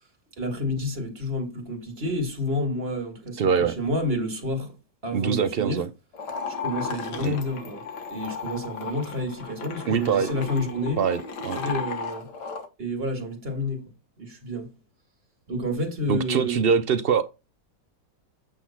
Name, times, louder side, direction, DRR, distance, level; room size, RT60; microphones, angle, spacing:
voice 1, 0.4-4.7 5.0-5.8 6.5-7.8 8.1-11.0 11.5-12.3 12.8-13.8 14.2-14.7 15.5-16.7, left 1 dB, 35° right, 2.1 m, -29 dB
voice 2, 3.4-3.8 5.1-5.9 7.2-7.4 9.9-10.3 11.0-11.6 16.1-17.3, right 6 dB, 85° right, 0.5 m, -23 dB
sound 1, 6.1-12.7, left 5 dB, 75° left, 1.8 m, -35 dB
8.5 x 3.9 x 5.8 m
omnidirectional pair, 1.9 m